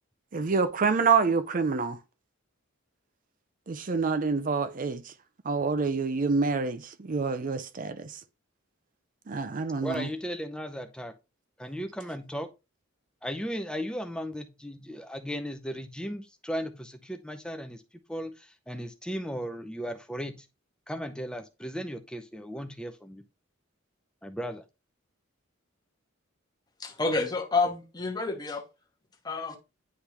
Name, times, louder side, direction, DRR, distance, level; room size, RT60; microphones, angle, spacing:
voice 1, 0.3-2.0 3.7-5.0 5.5-8.1 9.3-10.1, right 4 dB, 40° right, 0.5 m, -27 dB
voice 2, 9.8-11.1 11.6-12.5 13.2-17.8 18.1-20.5 20.9-23.2 24.2-24.6, equal, 5° left, 0.6 m, -36 dB
voice 3, 26.8-28.6 29.2-29.6, left 3 dB, 20° left, 1.0 m, -29 dB
9.8 x 3.5 x 2.9 m
head